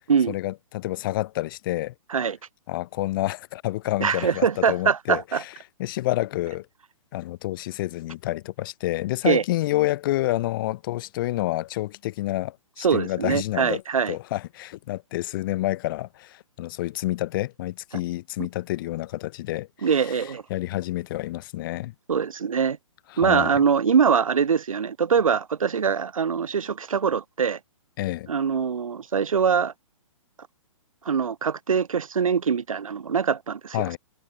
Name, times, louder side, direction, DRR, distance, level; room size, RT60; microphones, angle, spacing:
voice 1, 0.3-1.9 2.7-5.5 5.8-6.7 7.1-21.9 23.1-23.6 28.0-28.3 33.7-34.0, left 16 dB, 40° left, 7.8 m, -29 dB
voice 2, 4.0-5.4 9.2-9.4 12.8-14.2 19.8-20.4 22.1-22.8 23.2-27.6 28.3-29.7 31.1-34.0, right 6 dB, 80° right, 3.4 m, -23 dB
hypercardioid pair, 150°, 17 cm